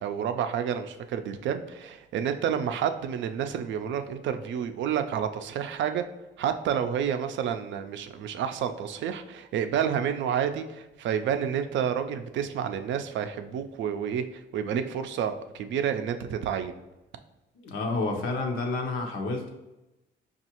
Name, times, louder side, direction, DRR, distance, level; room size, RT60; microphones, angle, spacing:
voice 1, 0.0-6.0 6.4-16.7, right 8 dB, 70° right, 8 dB, 0.4 m, -29 dB
voice 2, 17.6-19.5, left 3 dB, 90° left, 2 dB, 0.7 m, -29 dB
5.4 x 2.4 x 2.9 m, 0.99 s
cardioid pair, 90°, 20 cm